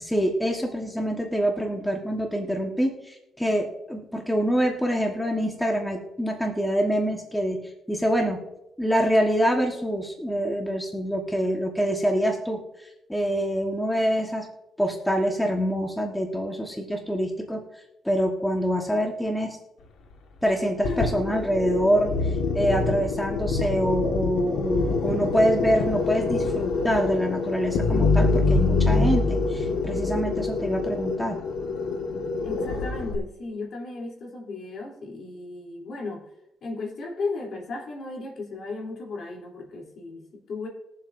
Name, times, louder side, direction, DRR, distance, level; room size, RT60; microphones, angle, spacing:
voice 1, 0.0-8.5 8.8-14.5 14.8-17.6 18.0-19.6 20.4-31.4, equal, 5° left, 1 dB, 1.4 m, -25 dB
sound 1, 20.8-33.2, left 3 dB, 90° left, 1.6 m, -25 dB
voice 2, 32.4-36.3 36.6-40.7, left 3 dB, 60° left, 0 dB, 3.3 m, -35 dB
21.5 x 7.4 x 2.6 m, 0.85 s
cardioid pair, 110°, 0 cm